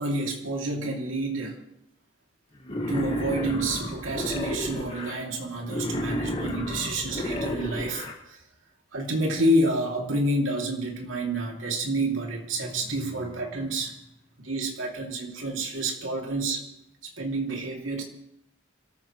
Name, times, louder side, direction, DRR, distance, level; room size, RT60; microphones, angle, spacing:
voice 1, 0.0-1.7 2.9-8.4 8.9-13.9 14.4-16.7 17.0-18.0, right 1 dB, 85° right, 0 dB, 2.7 m, -29 dB
Wild animals, 2.6-5.1 5.6-8.1, left 1 dB, 30° left, 1.8 m, -31 dB
26.5 x 13.5 x 3.1 m, 0.83 s
head